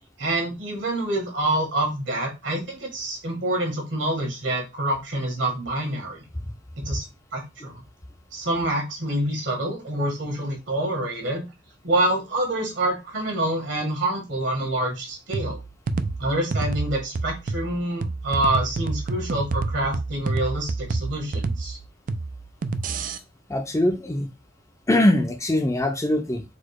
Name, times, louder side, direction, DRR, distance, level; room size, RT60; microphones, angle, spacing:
voice 1, 0.2-6.2 6.8-7.0 7.3-7.8 8.3-11.4 11.8-15.6 16.2-21.8, right 1 dB, 65° right, 1.6 m, -26 dB
sound 1, 15.3-23.2, right 3 dB, 45° right, 0.3 m, -29 dB
voice 2, 23.5-24.3 24.9-26.4, left 1 dB, 15° left, 0.6 m, -22 dB
4.2 x 2.3 x 4.7 m
head